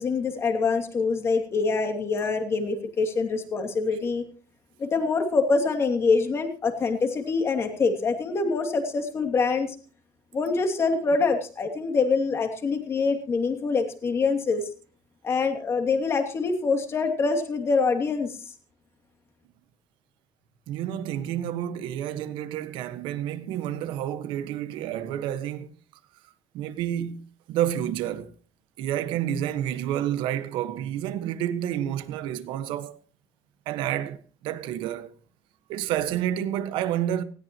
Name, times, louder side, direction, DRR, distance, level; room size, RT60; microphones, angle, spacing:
voice 1, 0.0-4.2 4.8-9.7 10.3-14.7 15.2-18.4, left 4 dB, 30° left, 2.7 m, -25 dB
voice 2, 20.7-25.7 26.5-28.3 28.8-33.0 33.6-35.1 35.7-37.2, right 11 dB, 85° right, 1.5 m, -29 dB
19.0 x 17.0 x 3.0 m
cardioid pair, 150°, 8 cm